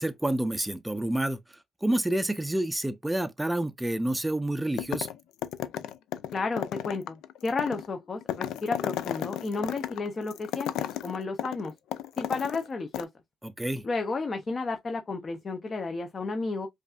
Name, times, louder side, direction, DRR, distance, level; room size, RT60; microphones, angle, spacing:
voice 1, 0.0-1.4 1.8-5.1 13.4-13.8, right 1 dB, 10° right, 0.5 m, -28 dB
sound 1, 4.8-5.2 5.4-12.7 12.9-13.0, left 11 dB, 90° left, 0.3 m, -34 dB
voice 2, 6.3-11.7 12.2-13.1 13.8-16.7, left 3 dB, 35° left, 0.6 m, -32 dB
5.1 x 2.5 x 2.4 m
cardioid pair, 90°, 0 cm